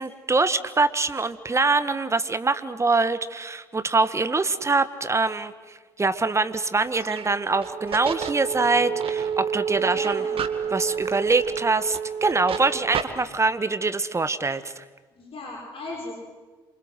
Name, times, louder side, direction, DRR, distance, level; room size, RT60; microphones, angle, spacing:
voice 1, 0.0-10.2 10.7-14.8, right 3 dB, 20° right, 12 dB, 1.7 m, -24 dB
sound 1, 6.7-13.0, right 7 dB, 45° right, 2.3 m, -29 dB
voice 2, 9.7-10.3 15.2-16.1, left 2 dB, 45° left, -2 dB, 6.4 m, -37 dB
27.5 x 25.0 x 8.1 m, 1.3 s
figure-of-eight pair, 50°, 13 cm